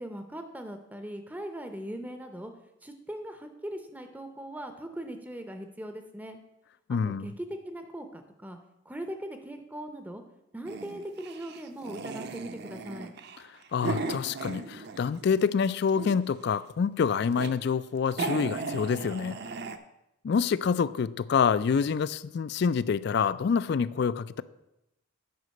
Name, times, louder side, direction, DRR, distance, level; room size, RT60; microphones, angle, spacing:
voice 1, 0.0-2.5 2.8-6.4 6.9-8.6 8.9-10.2 10.5-13.1, right 1 dB, 10° right, 6 dB, 0.6 m, -40 dB
voice 2, 6.9-7.3 13.7-19.4 20.2-24.4, left 6 dB, 55° left, 17 dB, 0.3 m, -27 dB
sound 1, 10.7-15.3 15.6-16.4 17.0-17.5 17.8-17.9 18.1-19.8, right 3 dB, 50° right, 0.6 m, -36 dB
9.4 x 5.0 x 6.3 m, 0.89 s
head